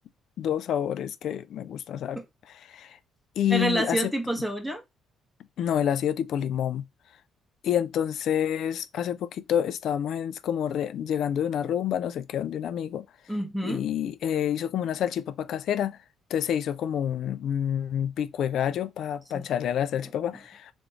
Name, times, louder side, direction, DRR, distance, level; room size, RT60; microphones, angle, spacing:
voice 1, 0.4-2.2 2.7-2.9 3.4-4.0 5.6-6.8 7.6-13.0 13.6-16.0 16.3-20.7, left 9 dB, 70° left, 0.4 m, -28 dB
voice 2, 3.5-4.8 13.3-13.8 19.3-19.4, right 1 dB, 5° left, 1.4 m, -28 dB
3.7 x 3.5 x 3.1 m
supercardioid pair, 70°, 0 cm